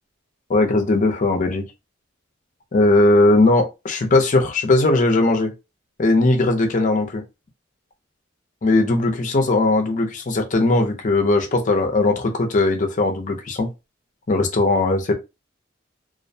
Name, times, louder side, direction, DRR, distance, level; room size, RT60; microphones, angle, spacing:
voice 1, 0.5-1.6 2.7-5.5 6.0-7.2 8.6-13.7 14.3-15.1, left 2 dB, 40° left, 0.5 m, -18 dB
2.4 x 2.1 x 2.6 m
head